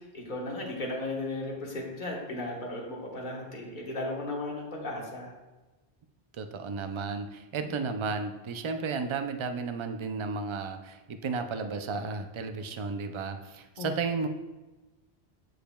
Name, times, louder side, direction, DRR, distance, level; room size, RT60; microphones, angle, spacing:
voice 1, 0.0-5.3 13.8-13.9, left 2 dB, 50° left, -2 dB, 1.4 m, -35 dB
voice 2, 6.3-14.3, right 4 dB, 50° right, 7 dB, 0.3 m, -33 dB
7.7 x 6.7 x 2.2 m, 1.1 s
omnidirectional pair, 1.1 m